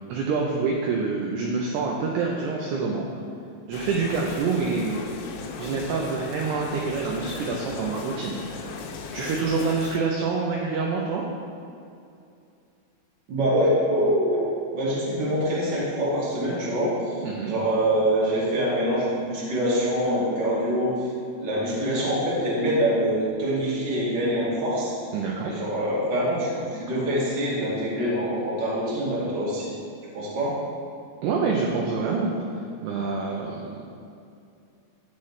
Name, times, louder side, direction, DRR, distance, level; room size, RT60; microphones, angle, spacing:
voice 1, 0.1-3.1 3.7-5.1 5.6-11.2 17.2-17.5 25.1-25.5 31.2-33.8, right 4 dB, 80° right, -1 dB, 2.5 m, -27 dB
sound 1, 3.7-10.0, left 5 dB, 85° left, 3.0 m, -37 dB
voice 2, 13.3-14.4 14.7-21.1 21.4-24.9 25.4-29.7 30.1-30.6, equal, 35° right, -8 dB, 1.9 m, -25 dB
16.0 x 5.6 x 3.3 m, 2.5 s
omnidirectional pair, 5.3 m